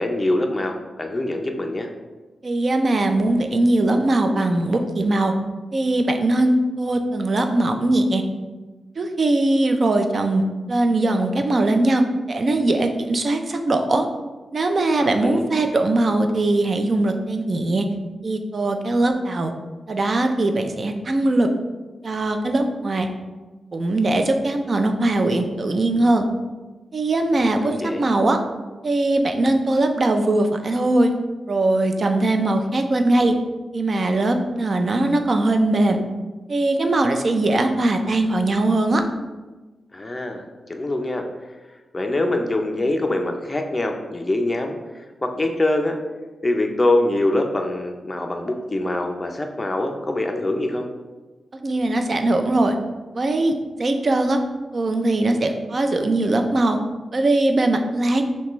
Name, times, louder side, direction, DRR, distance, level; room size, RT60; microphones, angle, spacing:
voice 1, 0.0-1.9 15.0-15.4 27.4-28.0 39.9-41.3 41.9-46.0 46.4-50.9, left 1 dB, 20° left, 3 dB, 0.4 m, -24 dB
voice 2, 2.4-5.3 5.7-8.2 9.0-10.4 10.7-14.1 14.5-17.9 18.2-19.5 19.9-21.5 22.0-23.1 23.7-26.3 26.9-28.4 28.8-31.1 31.5-33.3 33.7-36.0 36.5-39.0 51.6-52.8 53.1-54.4 54.7-56.8 57.1-58.2, right 2 dB, 45° right, 5 dB, 0.4 m, -20 dB
5.7 x 2.2 x 3.0 m, 1.2 s
wide cardioid pair, 115°, 0 cm